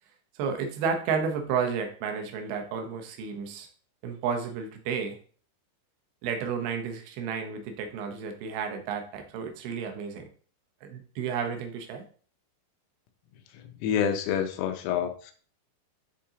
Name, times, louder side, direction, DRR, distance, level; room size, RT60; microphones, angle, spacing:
voice 1, 0.4-3.7 4.0-5.2 6.2-10.2 10.8-12.0, right 6 dB, 80° right, 4 dB, 2.2 m, -32 dB
voice 2, 13.5-15.3, left 8 dB, 85° left, 6 dB, 3.5 m, -28 dB
10.5 x 3.7 x 2.9 m, 0.43 s
omnidirectional pair, 5.8 m